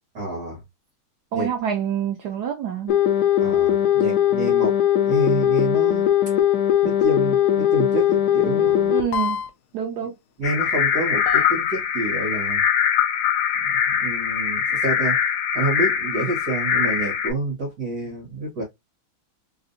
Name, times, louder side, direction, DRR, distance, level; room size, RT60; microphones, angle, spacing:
voice 1, 0.1-0.6 1.3-1.5 3.4-6.1 6.8-9.0 10.4-12.6 13.6-15.3 15.5-18.6, right 2 dB, 50° right, 1.6 m, -28 dB
voice 2, 1.3-3.0 8.4-8.6 8.9-9.4 9.7-10.2, right 9 dB, 90° right, 0.8 m, -27 dB
sound 1, 2.9-9.5 11.3-11.4, left 11 dB, 85° left, 0.9 m, -20 dB
sound 2, 10.4-17.3, left 8 dB, 70° left, 1.3 m, -22 dB
3.6 x 2.4 x 2.5 m
omnidirectional pair, 2.4 m